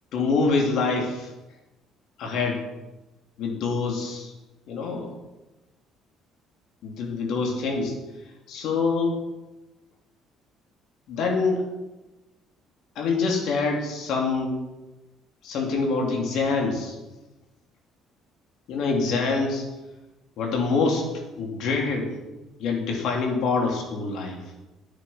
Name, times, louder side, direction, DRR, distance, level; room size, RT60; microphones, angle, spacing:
voice 1, 0.1-1.3 2.2-2.6 3.4-4.3 4.7-5.1 6.8-8.0 8.5-9.1 11.1-11.6 12.9-14.6 15.4-16.9 18.7-19.7 20.4-22.1 22.6-24.4, left 4 dB, 70° left, 1 dB, 2.9 m, -25 dB
9.5 x 8.9 x 5.9 m, 1.1 s
supercardioid pair, 75°, 0 cm